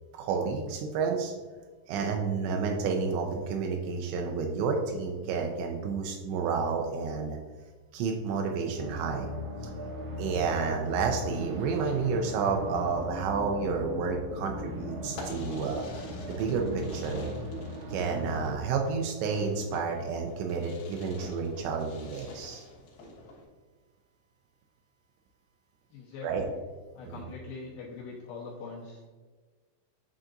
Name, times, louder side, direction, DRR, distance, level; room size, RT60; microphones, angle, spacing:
voice 1, 0.1-1.3 1.9-7.4 7.9-9.3 10.2-15.8 16.3-17.3 17.9-22.6 26.2-26.4 27.0-27.2, right 5 dB, 90° right, 2 dB, 2.5 m, -30 dB
sound 1, 8.8-18.5, equal, 70° right, 2.6 m, -38 dB
Fireworks, 15.1-23.4, left 2 dB, 65° left, 2.6 m, -47 dB
voice 2, 25.9-26.6 27.0-29.1, left 4 dB, 80° left, -5 dB, 2.2 m, -42 dB
10.5 x 3.7 x 2.5 m, 1.4 s
omnidirectional pair, 5.6 m